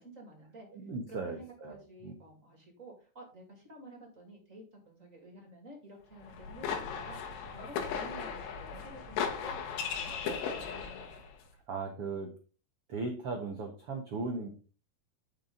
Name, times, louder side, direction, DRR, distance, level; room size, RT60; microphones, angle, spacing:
voice 1, 0.0-0.7 1.1-7.2 7.5-11.2, right 1 dB, 25° right, 1 dB, 1.9 m, -51 dB
voice 2, 0.7-1.7 2.0-2.1 11.7-12.3 12.9-14.5, right 3 dB, 85° right, 2 dB, 1.3 m, -37 dB
sound 1, 6.2-11.3, left 6 dB, 90° left, 3.6 m, -37 dB
11.0 x 5.5 x 3.9 m, 0.36 s
omnidirectional pair, 4.8 m